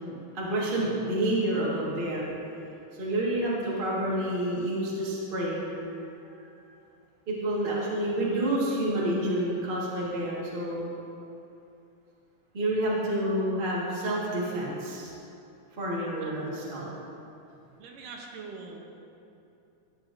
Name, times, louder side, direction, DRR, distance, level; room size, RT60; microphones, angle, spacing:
voice 1, 0.0-2.2 3.0-5.6 7.3-10.9 12.5-15.1 15.8-16.9, right 1 dB, 45° right, -6 dB, 0.6 m, -29 dB
voice 2, 15.9-16.3 17.8-18.9, right 4 dB, 75° right, 0 dB, 2.5 m, -43 dB
13.5 x 8.0 x 2.6 m, 2.8 s
omnidirectional pair, 3.9 m